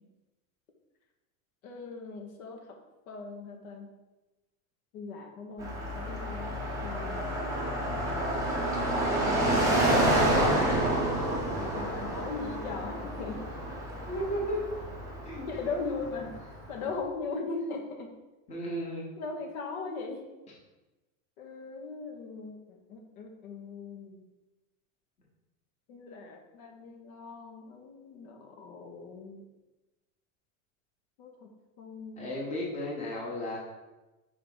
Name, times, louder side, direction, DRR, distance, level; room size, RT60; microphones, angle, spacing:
voice 1, 1.6-2.6 3.1-3.9 4.9-6.6 6.8-7.3 9.2-10.3 11.4-13.4 15.5-16.4 16.7-18.1 19.2-20.3 21.4-24.3 25.9-29.4 31.2-31.5 31.8-32.3, left 4 dB, 75° left, 2 dB, 1.2 m, -39 dB
Car passing by, 5.6-16.7, right 1 dB, 10° right, 0.5 m, -29 dB
voice 2, 14.1-14.6 15.2-15.5 17.4-17.5 18.5-19.0 32.2-33.6, equal, 15° left, -3 dB, 1.0 m, -34 dB
4.8 x 3.6 x 5.4 m, 1.1 s
supercardioid pair, 170°, 43 cm